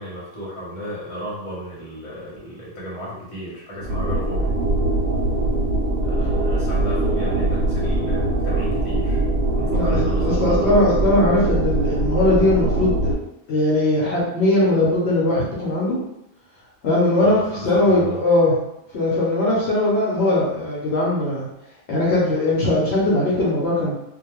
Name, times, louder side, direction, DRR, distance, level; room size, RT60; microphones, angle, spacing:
voice 1, 0.0-4.6 6.0-9.3 9.5-10.7 17.2-18.2, equal, 30° left, -7 dB, 0.9 m, -34 dB
sound 1, 3.8-13.1, right 2 dB, 85° right, 0.9 m, -22 dB
voice 2, 9.7-13.1 13.5-16.0 16.8-17.4 17.6-18.5 18.9-21.5 21.9-23.9, left 1 dB, 65° left, -6 dB, 0.9 m, -20 dB
2.3 x 2.2 x 3.1 m, 0.83 s
omnidirectional pair, 1.2 m